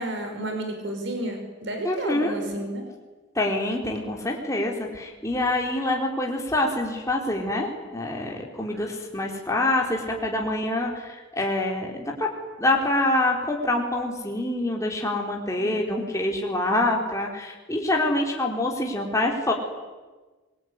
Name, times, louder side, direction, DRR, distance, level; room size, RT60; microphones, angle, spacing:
voice 1, 0.0-2.9 8.7-8.9 15.6-15.7, right 1 dB, 55° right, 4 dB, 5.4 m, -31 dB
voice 2, 1.8-2.3 3.3-12.3 12.6-19.5, left 1 dB, 15° left, 0 dB, 4.3 m, -26 dB
25.5 x 22.5 x 9.9 m, 1.3 s
head